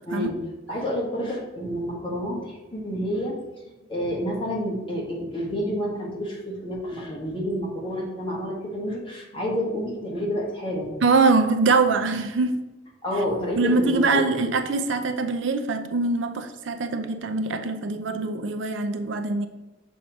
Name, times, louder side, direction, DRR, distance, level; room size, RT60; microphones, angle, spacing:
voice 1, 0.0-0.4 0.7-3.4 3.9-10.9 13.0-14.2, equal, 25° left, -3 dB, 1.6 m, -29 dB
voice 2, 11.0-12.6 13.6-19.5, right 3 dB, 70° right, 7 dB, 0.5 m, -23 dB
6.9 x 3.1 x 5.3 m, 1.1 s
head